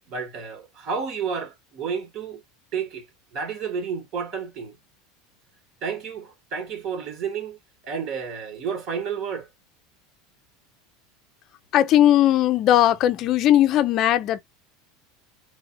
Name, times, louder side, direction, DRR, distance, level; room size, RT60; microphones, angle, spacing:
voice 1, 0.1-2.4 2.7-3.1 3.3-4.8 5.8-7.6 7.8-9.5, right 6 dB, 45° right, 1.3 m, -31 dB
voice 2, 11.7-14.4, left 12 dB, 45° left, 0.5 m, -18 dB
3.4 x 2.4 x 2.6 m
supercardioid pair, 130°, 0 cm